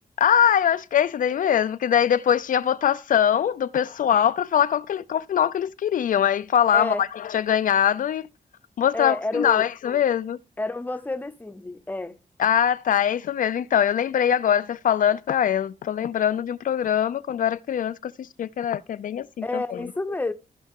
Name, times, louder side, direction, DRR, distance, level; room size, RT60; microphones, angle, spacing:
voice 1, 0.2-8.3 8.8-10.4 12.4-19.9, left 9 dB, 70° left, 0.4 m, -22 dB
voice 2, 6.7-7.1 8.9-9.6 10.6-12.2 19.4-20.3, left 2 dB, 10° left, 0.7 m, -29 dB
14.5 x 5.6 x 3.6 m
wide cardioid pair, 145°, 14 cm